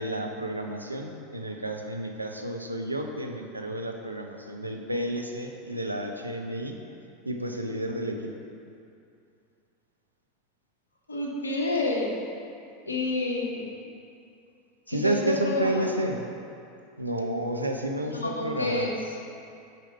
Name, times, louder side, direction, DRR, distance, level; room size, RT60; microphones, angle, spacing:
voice 1, 0.0-6.8 7.3-8.3 14.9-16.2 17.0-18.9, right 1 dB, 85° right, 3 dB, 0.5 m, -31 dB
voice 2, 11.1-12.1 12.9-13.7 14.9-15.9 18.0-18.9, left 2 dB, 80° left, -1 dB, 0.9 m, -29 dB
6.6 x 5.0 x 4.4 m, 2.5 s
figure-of-eight pair, 85°, 0 cm